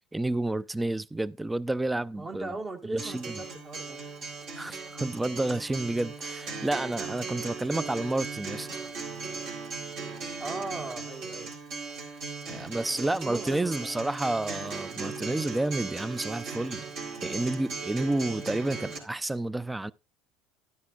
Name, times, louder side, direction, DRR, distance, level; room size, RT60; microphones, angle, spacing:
voice 1, 0.1-3.4 4.6-8.8 12.5-16.9 17.2-19.9, right 2 dB, 10° right, 0.5 m, -30 dB
voice 2, 2.1-4.0 10.4-11.5 12.6-14.0, right 2 dB, 35° right, 1.6 m, -39 dB
Acoustic guitar, 3.0-19.0, right 4 dB, 60° right, 3.7 m, -38 dB
12.0 x 9.6 x 2.4 m
hypercardioid pair, 85°, 0 cm